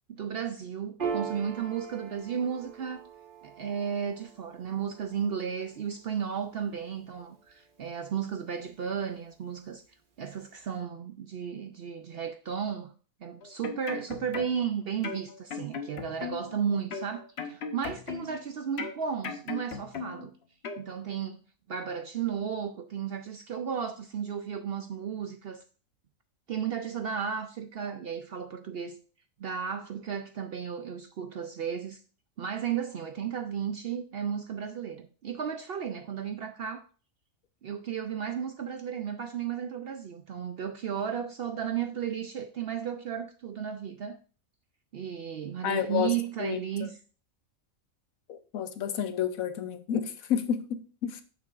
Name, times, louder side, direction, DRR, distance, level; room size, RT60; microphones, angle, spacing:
voice 1, 0.1-3.0 3.4-9.8 10.2-12.9 13.2-20.3 20.8-21.4 21.7-25.6 26.5-29.0 29.4-32.0 32.4-36.9 37.6-44.2 44.9-47.0, right 7 dB, 65° right, 0.6 m, -34 dB
Piano, 1.0-7.9, right 6 dB, 40° right, 1.2 m, -41 dB
sound 1, 13.4-14.7 15.0-16.6 16.9-18.4 18.8-20.3 20.6-20.8, left 5 dB, 50° left, 1.0 m, -37 dB
voice 2, 45.6-46.1 46.4-46.9 48.3-51.2, left 9 dB, 80° left, 1.2 m, -30 dB
8.8 x 6.9 x 2.5 m
omnidirectional pair, 1.5 m